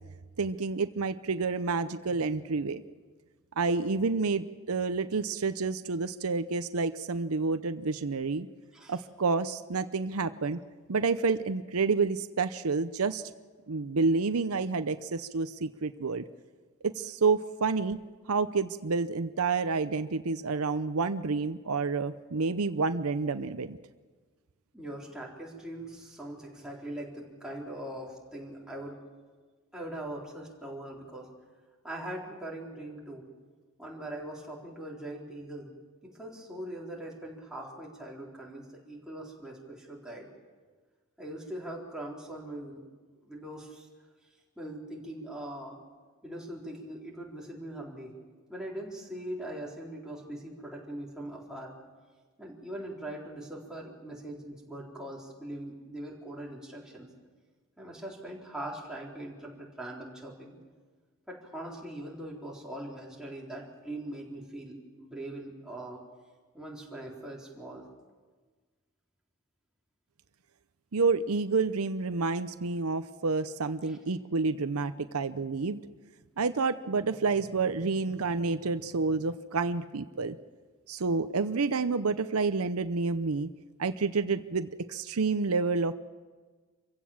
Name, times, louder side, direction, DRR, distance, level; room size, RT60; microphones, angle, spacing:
voice 1, 0.4-2.8 3.6-8.5 8.9-10.6 10.9-13.2 13.7-16.2 16.8-18.0 18.3-23.8 70.9-75.8 76.4-80.4 80.9-83.5 83.8-85.9, right 4 dB, 80° right, 11 dB, 0.7 m, -29 dB
voice 2, 24.7-29.0 29.7-31.3 31.8-33.3 33.8-35.7 36.0-40.3 41.2-42.9 43.2-43.9 44.6-45.8 46.2-48.1 48.5-51.7 52.4-57.1 57.8-60.6 61.3-66.0 66.5-67.8 73.9-74.0, right 1 dB, 5° right, -4 dB, 4.1 m, -41 dB
26.0 x 16.0 x 7.3 m, 1.4 s
head